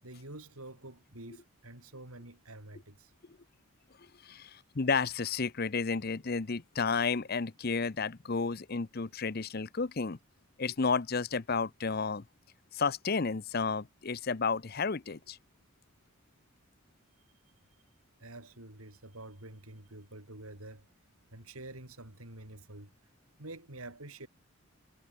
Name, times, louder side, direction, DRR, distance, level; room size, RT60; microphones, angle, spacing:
voice 1, 0.0-3.1 18.2-20.9 21.3-22.9 23.4-24.3, right 2 dB, 90° right, 5.9 m, -48 dB
voice 2, 4.2-10.2 10.6-12.2 12.7-15.4, left 4 dB, 45° left, 0.7 m, -32 dB
head